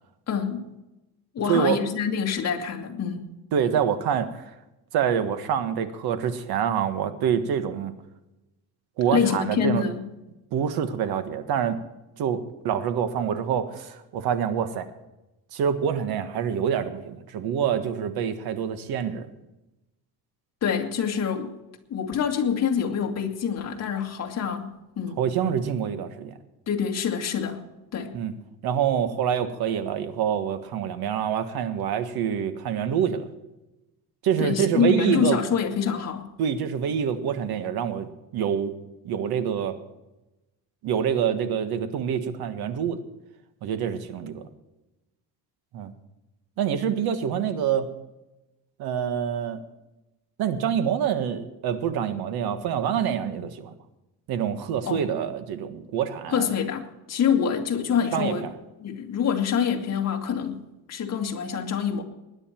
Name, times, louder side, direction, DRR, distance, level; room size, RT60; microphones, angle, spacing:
voice 1, 0.3-0.7 1.3-3.3 9.1-10.1 20.6-21.5 21.9-25.2 26.7-27.6 27.9-28.2 34.4-36.3 54.8-55.0 56.3-58.5 58.8-60.6 60.9-62.0, left 7 dB, 40° left, 1 dB, 2.2 m, -26 dB
voice 2, 1.5-1.8 3.5-4.5 4.9-7.9 9.0-9.8 10.5-11.8 12.2-14.9 15.5-19.3 25.2-26.3 28.1-28.3 28.6-33.3 34.2-35.4 36.4-38.8 39.0-39.8 40.8-43.0 43.6-44.5 45.7-45.9 46.6-47.9 48.8-49.6 50.4-53.7 54.3-56.5 58.1-58.3, right 8 dB, 70° right, 9 dB, 1.6 m, -26 dB
20.0 x 9.9 x 4.5 m, 0.98 s
cardioid pair, 140°, 40 cm